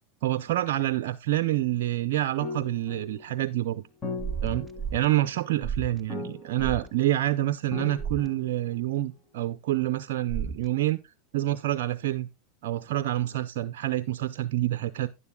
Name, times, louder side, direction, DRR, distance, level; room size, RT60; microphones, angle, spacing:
voice 1, 0.2-3.9 4.4-4.7 4.9-11.0 11.3-12.3 12.6-15.1, right 14 dB, 70° right, 0.5 m, -27 dB
sound 1, 2.4-9.1, left 3 dB, 25° left, 5.4 m, -39 dB
sound 2, 4.2-5.1 5.6-6.0 6.6-6.9 8.0-8.3 10.3-10.7, right 6 dB, 10° right, 0.6 m, -33 dB
11.0 x 10.0 x 2.3 m
hypercardioid pair, 105°, 0 cm